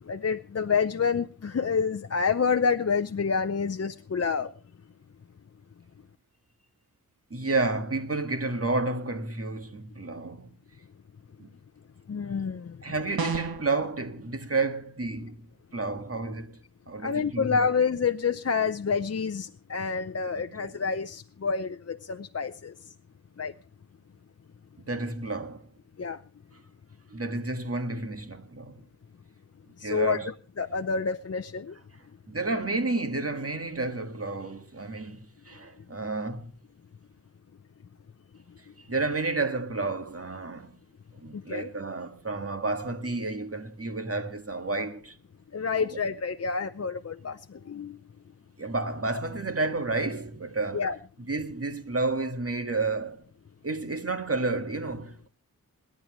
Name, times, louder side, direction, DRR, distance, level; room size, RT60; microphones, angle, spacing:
voice 1, 0.0-4.5 12.1-12.8 17.0-22.9 23.4-23.5 26.0-26.2 29.8-31.8 41.3-41.7 45.5-48.0 50.7-50.9, left 5 dB, 45° left, 0.7 m, -28 dB
voice 2, 7.3-10.5 11.4-11.5 12.8-15.5 15.7-16.6 16.9-17.7 24.9-25.6 27.1-28.8 29.8-30.3 32.3-36.5 38.8-40.8 41.1-45.2 45.8-46.0 48.6-50.8 51.2-53.2 53.6-55.3, right 3 dB, 40° right, 1.9 m, -31 dB
sound 1, 13.2-13.7, right 5 dB, 80° right, 1.4 m, -29 dB
27.5 x 10.5 x 3.1 m
wide cardioid pair, 55°, 36 cm